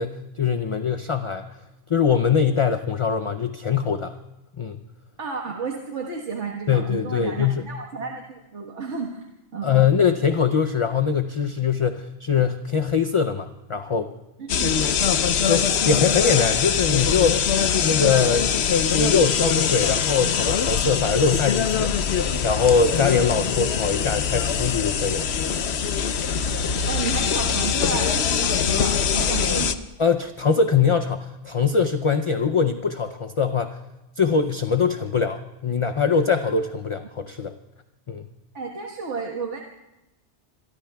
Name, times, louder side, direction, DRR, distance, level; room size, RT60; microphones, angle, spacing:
voice 1, 0.0-1.5 1.9-4.1 4.6-4.8 6.7-7.7 9.6-14.1 15.5-17.5 17.8-22.1 22.4-25.3 30.0-33.8 34.2-37.5 38.1-38.3, left 6 dB, 40° left, 7 dB, 0.5 m, -22 dB
voice 2, 5.2-9.2 9.5-9.7 14.4-14.8 26.8-29.8 38.5-39.6, right 4 dB, 85° right, 0 dB, 1.8 m, -32 dB
sound 1, 14.5-29.8, left 7 dB, 70° left, 1.0 m, -23 dB
27.0 x 23.0 x 2.3 m, 0.98 s
omnidirectional pair, 1.2 m